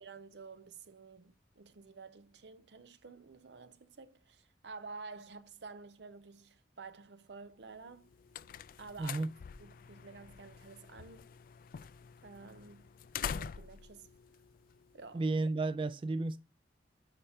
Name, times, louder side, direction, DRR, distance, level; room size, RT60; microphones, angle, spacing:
voice 1, 0.0-8.1 8.8-9.2 9.6-11.3 12.2-13.0 13.3-14.1 14.9-15.3, right 4 dB, 75° right, 0.7 m, -51 dB
sound 1, 7.8-15.3, left 8 dB, 50° left, 0.3 m, -46 dB
voice 2, 15.1-16.4, right 3 dB, 30° right, 0.3 m, -32 dB
9.9 x 4.3 x 3.5 m
head